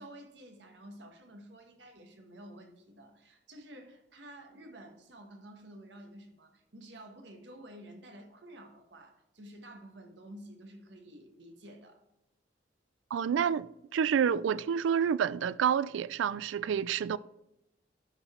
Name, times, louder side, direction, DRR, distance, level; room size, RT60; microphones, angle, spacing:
voice 1, 0.0-12.1, right 1 dB, 70° right, 1.4 m, -51 dB
voice 2, 13.1-17.2, right 7 dB, 85° right, 0.3 m, -29 dB
12.0 x 4.0 x 4.3 m
head